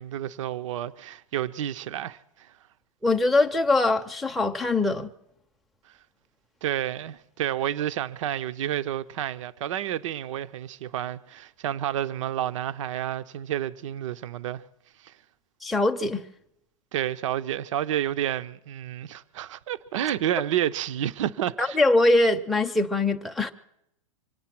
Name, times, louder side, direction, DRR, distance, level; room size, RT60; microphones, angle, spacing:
voice 1, 0.0-2.5 6.6-14.6 15.0-15.1 16.9-21.8, right 11 dB, 65° right, 0.7 m, -30 dB
voice 2, 3.0-5.1 15.6-16.2 21.6-23.5, left 2 dB, ahead, 0.5 m, -22 dB
25.5 x 9.4 x 5.9 m
hypercardioid pair, 145°, 17 cm